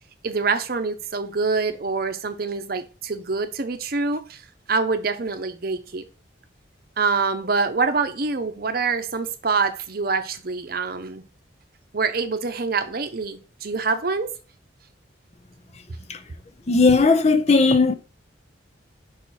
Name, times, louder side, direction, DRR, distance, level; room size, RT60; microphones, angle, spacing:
voice 1, 0.2-4.4 4.7-6.0 7.0-11.2 11.9-14.3, right 4 dB, 50° right, 0.7 m, -25 dB
voice 2, 16.7-17.9, left 3 dB, 35° left, 0.6 m, -17 dB
5.6 x 4.2 x 4.6 m
head